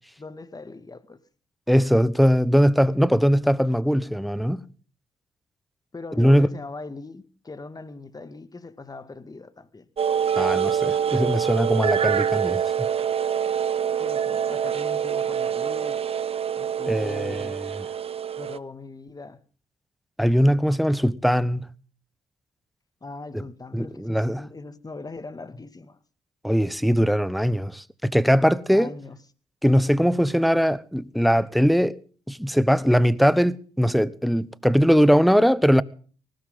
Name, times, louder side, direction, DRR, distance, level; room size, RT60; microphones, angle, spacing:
voice 1, 0.2-1.2 5.9-9.9 14.0-16.0 16.5-17.6 18.4-19.4 23.0-26.0 28.7-29.2, left 3 dB, 30° left, 2.1 m, -40 dB
voice 2, 1.7-4.6 6.2-6.5 10.4-12.6 16.9-17.7 20.2-21.7 23.7-24.5 26.4-28.9 29.6-32.0 32.3-35.8, equal, ahead, 1.1 m, -20 dB
sound 1, 10.0-18.6, right 8 dB, 50° right, 0.9 m, -25 dB
20.0 x 16.5 x 3.8 m
supercardioid pair, 50°, 13 cm